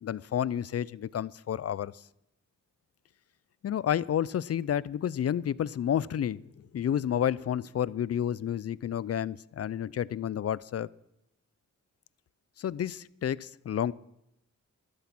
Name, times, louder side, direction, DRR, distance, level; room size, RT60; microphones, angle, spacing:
voice 1, 0.0-1.9 3.6-6.4 6.7-10.9 12.6-13.9, left 9 dB, 50° left, 0.5 m, -30 dB
14.0 x 12.0 x 6.1 m
cardioid pair, 80°, 31 cm